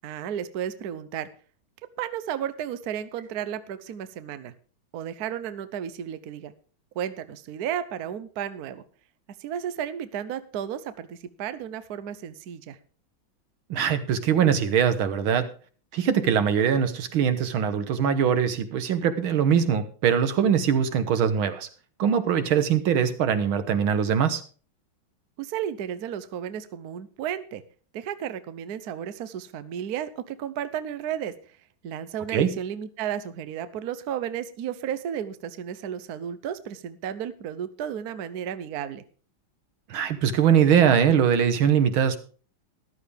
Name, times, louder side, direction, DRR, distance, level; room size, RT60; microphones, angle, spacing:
voice 1, 0.0-1.3 2.0-4.5 4.9-6.5 7.0-8.8 9.4-12.8 25.4-27.6 27.9-31.3 31.8-39.0, right 9 dB, 60° right, 13 dB, 1.1 m, -33 dB
voice 2, 13.7-15.5 15.9-21.7 22.0-24.4 32.3-32.5 39.9-42.2, right 8 dB, 80° right, 10 dB, 1.9 m, -22 dB
14.0 x 12.0 x 3.4 m, 0.40 s
omnidirectional pair, 2.2 m